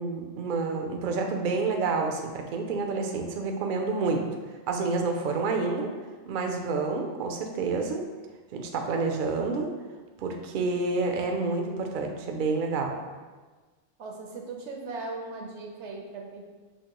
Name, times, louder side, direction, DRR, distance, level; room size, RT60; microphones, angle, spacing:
voice 1, 0.0-4.2 4.7-5.9 6.3-8.0 8.5-9.7 10.2-13.0, right 4 dB, 60° right, 3 dB, 0.5 m, -28 dB
voice 2, 14.0-16.4, right 3 dB, 75° right, 1 dB, 1.0 m, -38 dB
5.7 x 2.8 x 2.9 m, 1.3 s
omnidirectional pair, 1.2 m